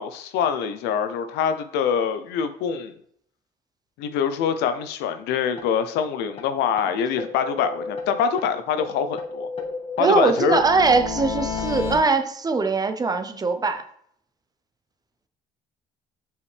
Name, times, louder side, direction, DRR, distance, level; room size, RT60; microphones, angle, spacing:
voice 1, 0.0-2.9 4.0-9.5 10.0-10.6, left 7 dB, 90° left, 10 dB, 0.7 m, -24 dB
sound 1, 5.6-5.7 6.0-6.1 6.4-6.5 6.8-6.9 7.2-8.5 8.8-12.0, left 4 dB, 35° left, 1.2 m, -32 dB
voice 2, 10.0-13.8, right 4 dB, 20° right, 8 dB, 0.7 m, -21 dB
7.0 x 4.8 x 3.4 m, 0.65 s
cardioid pair, 110°, 17 cm